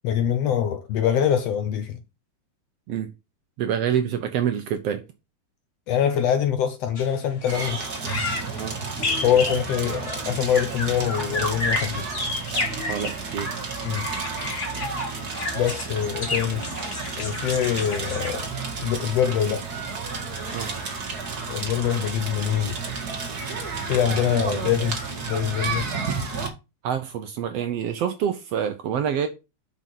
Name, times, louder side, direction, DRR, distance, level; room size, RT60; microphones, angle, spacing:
voice 1, 0.0-2.0 5.9-7.8 9.2-12.1 13.8-14.1 15.5-16.6 17.2-18.5 18.8-19.7 21.5-22.8 23.9-25.9, left 9 dB, 70° left, 1.6 m, -24 dB
voice 2, 3.6-5.0 8.6-8.7 12.9-13.5 20.4-20.7 26.5-26.6 26.8-29.3, right 9 dB, 70° right, 1.6 m, -27 dB
sound 1, 7.0-7.1 7.4-13.2 13.7-18.5, left 3 dB, 35° left, 1.2 m, -31 dB
Crackle, 7.5-26.5, right 4 dB, 35° right, 1.9 m, -31 dB
6.2 x 5.4 x 5.8 m
omnidirectional pair, 3.5 m